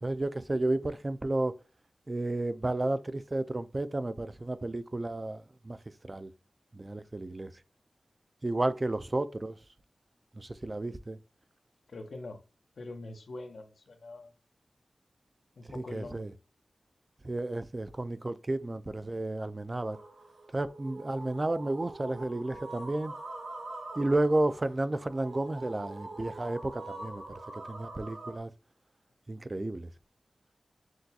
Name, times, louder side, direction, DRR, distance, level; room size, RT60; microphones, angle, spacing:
voice 1, 0.0-1.5 2.1-5.8 6.0-6.3 6.7-7.5 8.4-9.6 10.4-11.2 15.7-16.3 17.2-20.0 20.5-23.1 24.0-28.5 29.3-29.9, right 2 dB, 30° right, 0.3 m, -32 dB
voice 2, 11.9-12.4 12.8-14.3 15.6-16.3, left 2 dB, 80° left, 0.7 m, -44 dB
operatic windlike harmony, 19.9-28.4, right 2 dB, 80° right, 1.4 m, -44 dB
6.1 x 2.2 x 2.7 m
wide cardioid pair, 115°, 0 cm